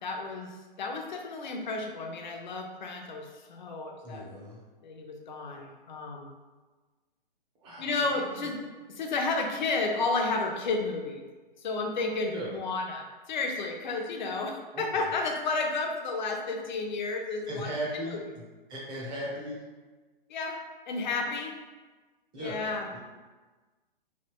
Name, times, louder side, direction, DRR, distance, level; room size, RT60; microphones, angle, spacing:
voice 1, 0.0-4.3 4.8-6.3 7.8-8.6 8.9-11.2 11.6-17.7 18.0-18.2 20.3-21.6 22.4-22.9, left 3 dB, 55° left, 2 dB, 0.6 m, -32 dB
voice 2, 4.0-4.6 7.6-8.5 12.3-12.6 14.7-15.1 17.5-18.4 18.7-19.6 22.3-23.0, right 1 dB, 15° right, -4 dB, 0.6 m, -38 dB
3.2 x 2.7 x 2.9 m, 1.3 s
hypercardioid pair, 135°, 29 cm